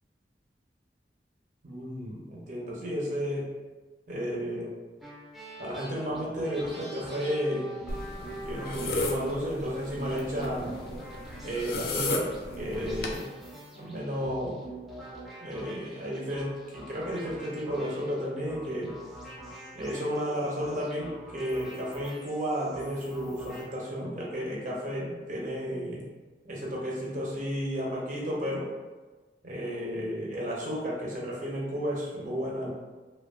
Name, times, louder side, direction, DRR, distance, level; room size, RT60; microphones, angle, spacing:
voice 1, 1.6-3.5 4.1-4.7 5.6-7.7 8.4-10.7 11.4-12.3 12.5-13.3 13.8-14.6 15.4-18.9 19.7-26.0 26.4-28.7 29.4-32.7, equal, 45° right, -4 dB, 0.6 m, -32 dB
sound 1, 5.0-23.6, right 1 dB, ahead, 0.5 m, -44 dB
sound 2, 7.9-13.2, left 2 dB, 55° left, 0.3 m, -35 dB
2.8 x 2.2 x 2.3 m, 1.3 s
head